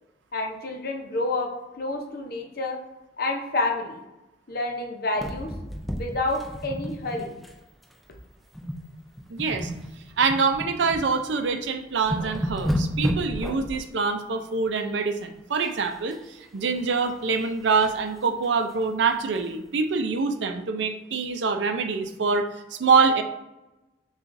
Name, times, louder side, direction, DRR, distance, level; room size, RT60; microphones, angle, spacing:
voice 1, 0.3-2.8 3.2-4.0 4.5-5.5 5.9-7.4, left 2 dB, 55° left, 2 dB, 0.7 m, -29 dB
sound 1, 5.1-7.6 7.8-8.0 8.5-8.9 9.2-11.1 11.5-11.6 11.9-13.8 15.6-16.2 16.5-18.0 18.4-18.5 18.8-18.9 19.3-19.4, equal, ahead, 0.4 m, -32 dB
voice 2, 9.3-9.7 10.2-16.2 16.5-23.2, right 4 dB, 80° right, 6 dB, 0.5 m, -25 dB
6.8 x 2.4 x 2.6 m, 0.99 s
head